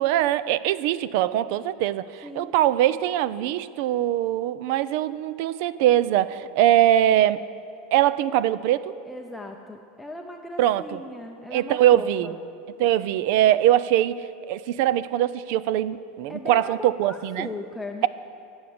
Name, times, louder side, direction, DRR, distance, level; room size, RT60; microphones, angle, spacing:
voice 1, 0.0-7.4 7.9-8.9 10.6-10.8 11.5-12.4 12.8-17.5, right 12 dB, 60° right, 17 dB, 0.5 m, -22 dB
voice 2, 2.2-2.5 9.0-12.3 16.3-18.1, left 2 dB, 5° left, 2 dB, 0.6 m, -38 dB
16.5 x 7.2 x 9.6 m, 2.6 s
supercardioid pair, 155°, 0 cm